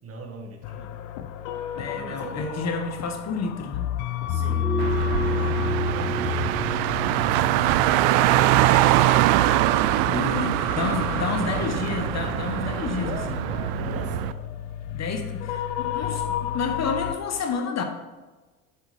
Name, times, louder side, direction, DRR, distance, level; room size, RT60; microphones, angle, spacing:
voice 1, 0.0-1.0 1.9-2.8 4.3-4.7 5.0-9.0 10.1-10.3 10.6-11.1 13.8-14.4, right 3 dB, 40° right, 2 dB, 1.8 m, -42 dB
sound 1, 0.6-17.2, left 9 dB, 75° left, 0.6 m, -32 dB
voice 2, 1.7-3.9 10.1-13.5 13.8-14.0 14.9-16.2 16.5-17.8, left 5 dB, 45° left, 5 dB, 1.1 m, -30 dB
sound 2, 4.3-9.5 9.8-9.9, right 4 dB, ahead, 0.4 m, -34 dB
Car, 4.8-14.3, right 15 dB, 75° right, 0.5 m, -23 dB
7.7 x 6.9 x 3.4 m, 1.2 s
supercardioid pair, 80°, 38 cm